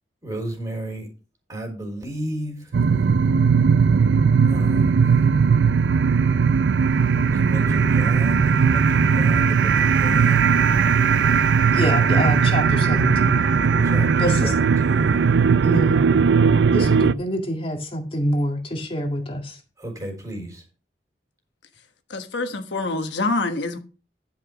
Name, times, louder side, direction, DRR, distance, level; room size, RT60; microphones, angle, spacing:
voice 1, 0.2-1.1 1.5-2.8 4.5-5.1 7.3-10.5 13.8-15.2 19.8-20.6, right 1 dB, 20° right, 3.9 m, -33 dB
sound 1, 2.7-17.1, right 6 dB, 75° right, 0.4 m, -18 dB
voice 2, 11.7-13.5 14.2-14.5 15.6-16.2 16.7-19.6, equal, 30° left, 2.0 m, -26 dB
voice 3, 22.1-23.8, left 3 dB, 75° left, 1.3 m, -26 dB
11.0 x 5.9 x 5.1 m
head